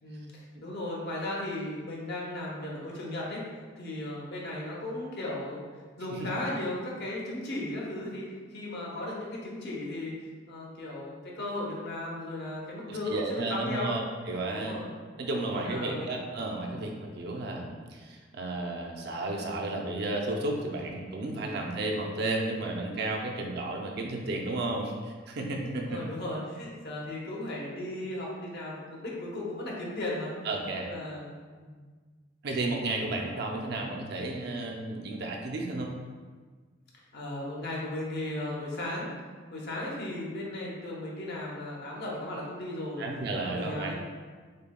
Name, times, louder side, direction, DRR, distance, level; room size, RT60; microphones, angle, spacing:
voice 1, 0.0-3.4 3.8-5.6 6.0-8.3 8.5-10.1 10.5-14.0 14.5-14.9 15.5-16.1 16.7-16.8 25.7-30.3 30.8-31.8 37.1-39.1 39.5-43.0 43.4-44.0, left 1 dB, 55° left, -3 dB, 0.8 m, -36 dB
voice 2, 12.9-14.8 15.2-26.0 30.4-30.9 32.4-35.9 43.0-43.9, right 2 dB, 55° right, 0 dB, 0.5 m, -33 dB
6.4 x 2.2 x 2.2 m, 1.5 s
head